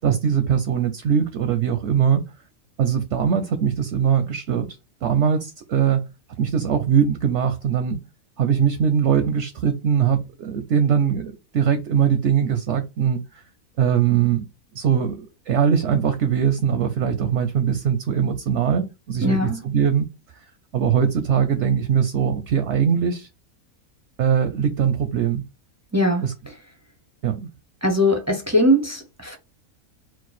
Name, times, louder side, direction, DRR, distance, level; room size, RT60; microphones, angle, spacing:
voice 1, 0.0-2.3 2.8-4.7 5.0-6.1 6.4-8.0 8.4-13.4 13.8-14.4 14.7-20.1 20.7-23.3 24.2-25.4 26.2-26.3 27.2-27.5, right 8 dB, 65° right, 0.7 m, -21 dB
voice 2, 19.2-19.6 25.9-26.2 27.8-29.4, equal, 25° right, 0.3 m, -20 dB
4.5 x 2.2 x 4.1 m
omnidirectional pair, 1.6 m